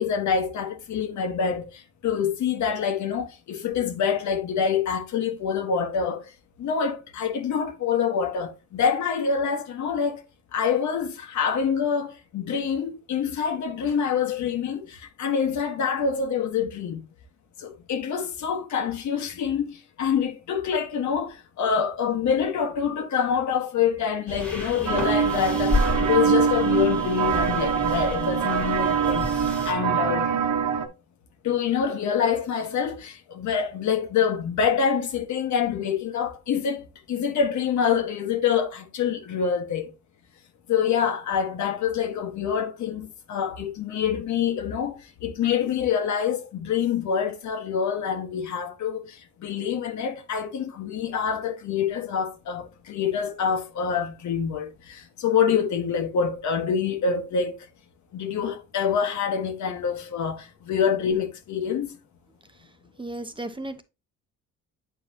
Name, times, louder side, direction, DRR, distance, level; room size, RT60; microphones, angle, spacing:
voice 1, 0.0-6.3 6.6-10.2 10.5-17.0 17.6-30.3 31.4-39.9 40.7-57.7 58.1-62.0, left 7 dB, 70° left, 1.6 m, -26 dB
sound 1, 24.3-29.7, left 2 dB, 5° left, 1.8 m, -31 dB
sound 2, 24.9-30.9, right 7 dB, 70° right, 1.2 m, -24 dB
voice 2, 63.0-63.8, right 1 dB, 15° right, 0.9 m, -34 dB
8.7 x 4.7 x 2.9 m
cardioid pair, 90°, 30 cm